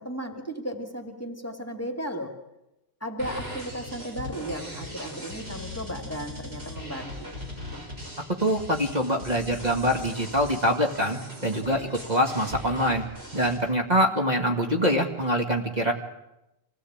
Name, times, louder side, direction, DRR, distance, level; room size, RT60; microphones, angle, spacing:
voice 1, 0.0-2.3 3.0-7.3, equal, 15° left, 5 dB, 2.4 m, -35 dB
sound 1, 3.2-13.6, left 1 dB, 85° right, 5.8 m, -39 dB
voice 2, 8.4-13.0 13.3-15.9, equal, 40° right, 2 dB, 2.3 m, -24 dB
26.0 x 17.5 x 8.8 m, 0.91 s
omnidirectional pair, 1.1 m